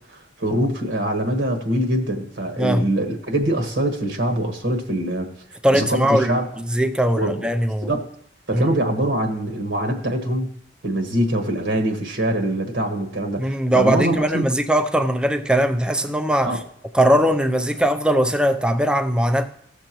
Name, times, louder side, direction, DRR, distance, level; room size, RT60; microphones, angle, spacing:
voice 1, 0.1-5.3 5.7-6.5 7.1-7.5 7.9-8.0 8.5-10.5 10.8-14.5 16.4-16.6, right 1 dB, 80° right, 1.4 m, -23 dB
voice 2, 2.6-2.9 5.6-6.4 6.7-7.9 8.5-8.6 13.4-16.6 16.9-19.5, right 1 dB, 5° right, 0.4 m, -20 dB
15.5 x 6.7 x 3.0 m
head